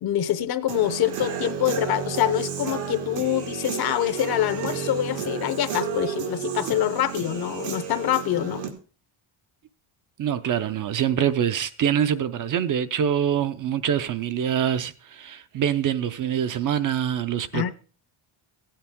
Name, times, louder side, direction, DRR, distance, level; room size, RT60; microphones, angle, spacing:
voice 1, 0.0-8.6 17.5-17.7, left 12 dB, 50° left, 0.7 m, -25 dB
Human voice / Guitar, 0.7-8.7, right 7 dB, 90° right, 2.1 m, -32 dB
voice 2, 10.2-17.7, right 9 dB, 40° right, 0.5 m, -25 dB
16.0 x 8.7 x 3.5 m
cardioid pair, 170°, 49 cm